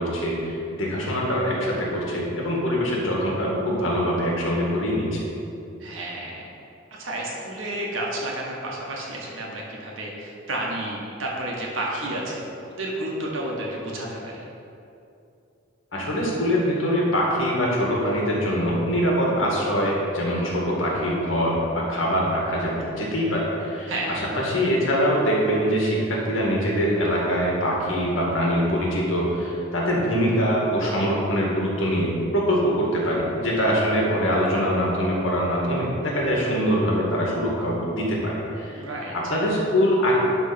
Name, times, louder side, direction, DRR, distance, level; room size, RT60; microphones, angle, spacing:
voice 1, 0.0-5.2 15.9-38.8 39.1-40.2, equal, 85° left, -3 dB, 1.9 m, -23 dB
voice 2, 5.8-6.5 6.9-12.4 12.8-14.4 23.9-24.2 38.7-39.1, right 1 dB, 85° right, -3 dB, 1.7 m, -31 dB
11.0 x 3.8 x 5.3 m, 2.7 s
head